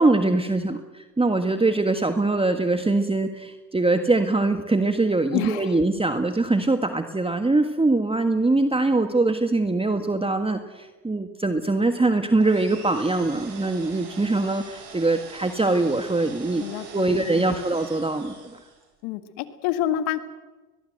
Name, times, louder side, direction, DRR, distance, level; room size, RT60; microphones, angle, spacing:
voice 1, 0.0-16.6 16.9-18.3, right 2 dB, 10° right, 7 dB, 1.7 m, -23 dB
voice 2, 5.3-5.8 16.6-17.7 19.0-20.2, left 12 dB, 75° left, 11 dB, 2.0 m, -28 dB
sound 1, 12.4-18.9, right 5 dB, 75° right, 7.0 m, -43 dB
22.5 x 21.5 x 7.9 m, 1.2 s
hypercardioid pair, 75°, 47 cm